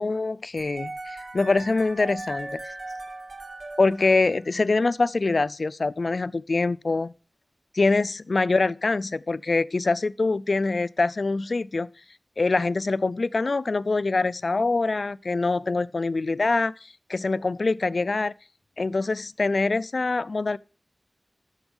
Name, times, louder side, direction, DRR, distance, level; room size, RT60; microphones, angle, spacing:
voice 1, 0.0-2.7 3.8-7.1 7.7-11.9 12.4-18.3 18.8-20.6, left 3 dB, 70° left, 0.5 m, -24 dB
sound 1, 0.6-4.7, right 2 dB, 75° right, 2.5 m, -38 dB
13.0 x 7.0 x 5.4 m
cardioid pair, 45°, 0 cm